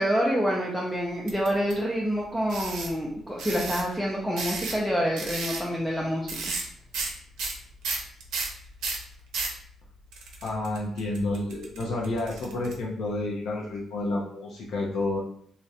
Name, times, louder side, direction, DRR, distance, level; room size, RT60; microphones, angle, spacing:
voice 1, 0.0-6.4, equal, ahead, -4 dB, 0.4 m, -27 dB
sound 1, 1.3-1.7 2.5-2.9 3.4-3.8 4.4-4.9 5.2-5.6 6.3-6.7 6.9-7.1 7.4-9.6 10.1-12.7, right 3 dB, 85° right, 0.5 m, -32 dB
voice 2, 10.4-15.2, left 2 dB, 75° left, -3 dB, 0.5 m, -30 dB
2.4 x 2.1 x 2.7 m, 0.66 s
cardioid pair, 90°, 0 cm